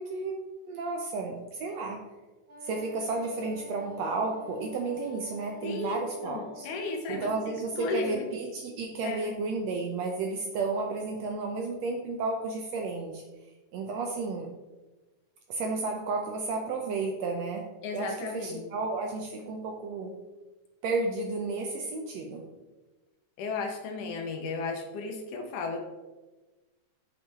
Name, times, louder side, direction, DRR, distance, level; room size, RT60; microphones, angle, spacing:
voice 1, 0.0-2.0 2.6-6.7 7.1-13.2 13.7-14.5 15.5-17.7 17.9-20.1 20.8-22.4, right 3 dB, 75° right, 2 dB, 1.6 m, -32 dB
Wind instrument woodwind instrument, 2.5-7.1, left 1 dB, 20° right, 2.4 m, -47 dB
voice 2, 5.6-6.0 6.2-8.3 9.0-9.3 17.8-18.7 23.4-25.8, left 3 dB, 75° left, 3 dB, 2.5 m, -34 dB
8.3 x 6.7 x 3.6 m, 1.2 s
omnidirectional pair, 3.7 m